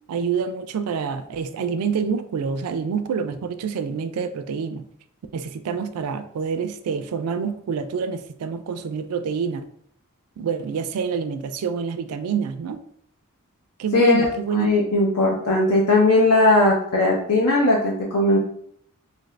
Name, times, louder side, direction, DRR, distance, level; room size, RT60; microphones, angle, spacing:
voice 1, 0.1-4.8 5.3-9.7 10.4-12.8 13.8-14.7, right 5 dB, 80° right, 9 dB, 0.3 m, -27 dB
voice 2, 13.9-14.3 14.5-18.4, left 2 dB, 75° left, -3 dB, 0.6 m, -18 dB
2.7 x 2.5 x 3.1 m, 0.66 s
head